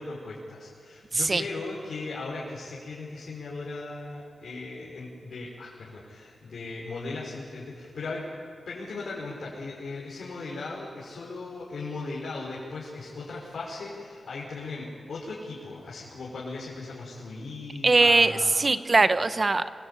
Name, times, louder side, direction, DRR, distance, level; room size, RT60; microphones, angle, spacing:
voice 1, 0.0-8.3 8.7-18.6, left 3 dB, 75° left, -4 dB, 5.6 m, -38 dB
voice 2, 17.8-19.6, right 3 dB, 35° right, 11 dB, 1.0 m, -21 dB
27.5 x 23.5 x 8.7 m, 2.2 s
wide cardioid pair, 110°, 0 cm